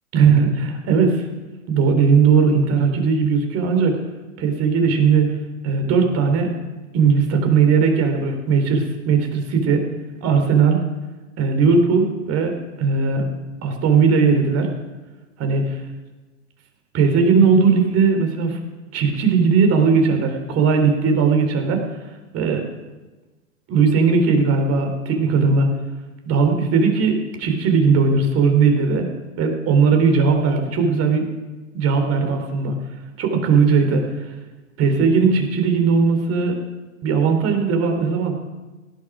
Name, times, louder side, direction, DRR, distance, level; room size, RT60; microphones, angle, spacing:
voice 1, 0.1-1.3 1.7-4.0 4.4-5.3 5.6-6.5 6.9-9.8 10.2-10.8 11.4-12.5 12.8-13.3 13.6-14.7 15.4-15.8 16.9-18.6 18.9-21.8 22.3-22.6 23.7-25.7 26.2-29.1 29.4-31.3 31.7-32.8 33.2-34.0 34.8-36.6 37.0-38.3, right 5 dB, 35° right, 5 dB, 3.0 m, -18 dB
17.5 x 9.2 x 6.0 m, 1.2 s
hypercardioid pair, 110°, 40 cm